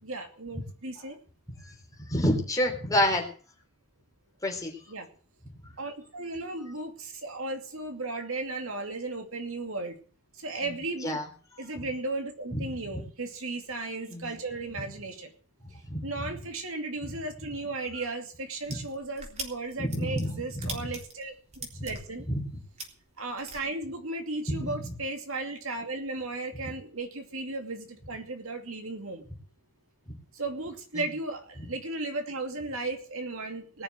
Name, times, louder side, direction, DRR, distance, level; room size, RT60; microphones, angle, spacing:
voice 1, 0.0-1.2 4.9-5.1 5.8-10.0 10.4-11.2 11.6-15.3 16.0-22.3 23.2-29.2 30.3-33.8, right 2 dB, 65° right, 4 dB, 2.6 m, -35 dB
voice 2, 2.1-3.3 4.4-4.8 10.6-10.7 11.0-11.2 11.7-11.9 12.6-12.7 14.1-14.3 15.9-16.1 17.0-17.1 18.7-18.8 19.8-20.9 21.7-21.8 22.3-22.4 24.5-24.9 30.9-31.0, left 1 dB, 15° left, 2 dB, 3.8 m, -29 dB
sound 1, 18.6-23.6, right 3 dB, 30° right, 3.7 m, -41 dB
19.5 x 7.1 x 7.8 m, 0.43 s
head